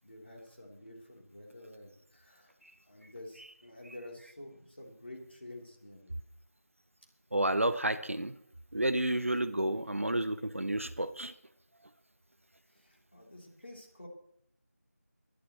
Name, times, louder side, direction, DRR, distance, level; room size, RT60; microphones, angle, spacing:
voice 1, 0.0-2.5 2.9-6.1 12.7-14.1, left 1 dB, 45° left, -1 dB, 3.2 m, -50 dB
voice 2, 7.3-8.4 8.7-11.3, right 1 dB, 55° right, 12 dB, 0.8 m, -30 dB
24.0 x 11.5 x 3.1 m, 0.72 s
figure-of-eight pair, 175°, 9 cm